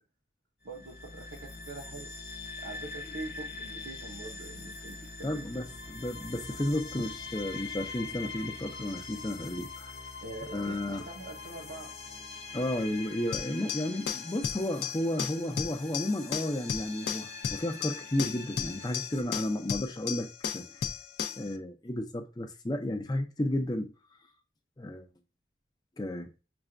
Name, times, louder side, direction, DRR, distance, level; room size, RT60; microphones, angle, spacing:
sound 1, 0.6-19.2, left 4 dB, 60° left, 0.8 m, -43 dB
voice 1, 0.6-2.1 2.6-5.5 10.2-11.9, right 2 dB, 85° right, 0.7 m, -44 dB
voice 2, 5.2-9.9 10.5-11.0 12.5-20.8 21.4-23.9 24.8-25.1 26.0-26.3, left 1 dB, 25° left, 0.5 m, -33 dB
sound 2, 13.3-21.5, left 7 dB, 80° left, 0.4 m, -35 dB
5.9 x 2.2 x 2.4 m
head